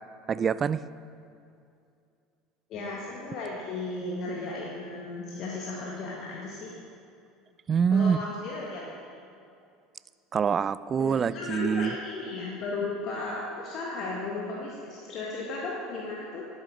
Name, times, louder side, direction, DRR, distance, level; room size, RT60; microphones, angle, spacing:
voice 1, 0.3-0.8 7.7-8.2 10.3-11.9, right 6 dB, 35° right, 17 dB, 0.3 m, -25 dB
voice 2, 2.7-6.8 7.9-9.0 11.0-16.5, left 3 dB, 50° left, -3 dB, 1.5 m, -35 dB
11.0 x 8.2 x 5.1 m, 2.5 s
hypercardioid pair, 75°, 0 cm